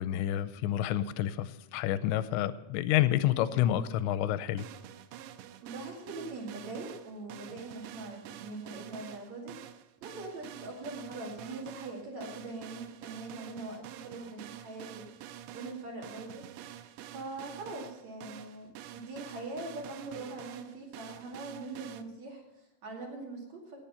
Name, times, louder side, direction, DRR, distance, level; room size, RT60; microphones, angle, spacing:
voice 1, 0.0-4.7, left 12 dB, 85° left, 14 dB, 2.8 m, -29 dB
sound 1, 4.6-22.0, right 11 dB, 85° right, 2.9 m, -47 dB
voice 2, 5.6-9.6 10.0-15.1 15.5-16.4 17.1-23.8, right 2 dB, 45° right, -1 dB, 3.1 m, -42 dB
18.5 x 7.5 x 5.6 m, 0.88 s
omnidirectional pair, 5.1 m